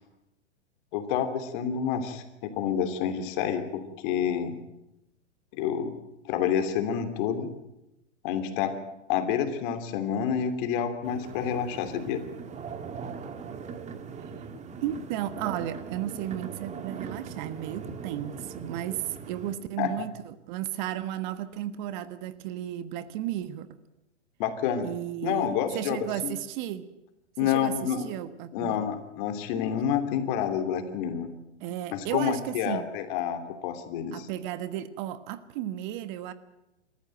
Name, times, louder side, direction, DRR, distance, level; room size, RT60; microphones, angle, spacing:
voice 1, 0.9-4.6 5.5-5.9 6.3-7.5 8.2-8.7 9.1-12.2 19.8-19.9 24.4-24.9 25.2-26.1 27.4-28.1 28.5-31.3 31.9-34.3, left 8 dB, 45° left, 3.0 m, -28 dB
sound 1, 11.0-19.6, right 6 dB, 20° right, 1.9 m, -40 dB
voice 2, 14.8-23.7 24.8-26.9 27.4-28.8 31.6-32.9 34.1-36.3, right 12 dB, 40° right, 1.4 m, -34 dB
27.0 x 14.5 x 9.1 m
hypercardioid pair, 120°, 35 cm